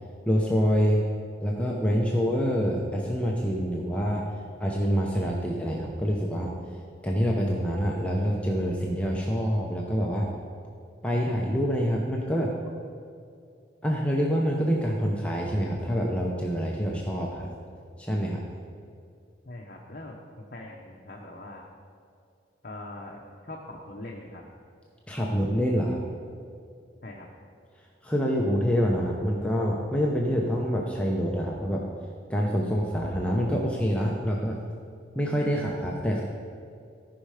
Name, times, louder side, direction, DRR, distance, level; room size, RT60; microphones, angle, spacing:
voice 1, 0.3-1.1 1.4-4.3 4.6-6.5 7.0-10.3 11.0-12.5 13.8-17.5 18.0-18.4 25.1-26.0 28.0-31.8 32.3-34.6 35.2-36.2, equal, 5° left, -2 dB, 0.7 m, -26 dB
voice 2, 19.4-21.7 22.6-24.4 27.0-27.3, left 1 dB, 50° left, -2 dB, 0.9 m, -42 dB
14.0 x 5.6 x 4.9 m, 2.4 s
head